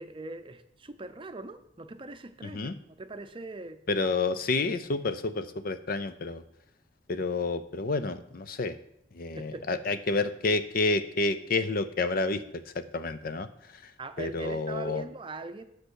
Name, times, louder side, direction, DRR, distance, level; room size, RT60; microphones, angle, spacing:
voice 1, 0.0-3.8 9.3-10.0 14.0-15.6, right 3 dB, 30° right, 9 dB, 0.6 m, -41 dB
voice 2, 2.4-2.8 3.9-6.4 7.1-8.8 9.1-13.5 14.2-15.0, left 3 dB, 50° left, 11 dB, 0.6 m, -29 dB
7.9 x 6.6 x 6.3 m, 0.75 s
head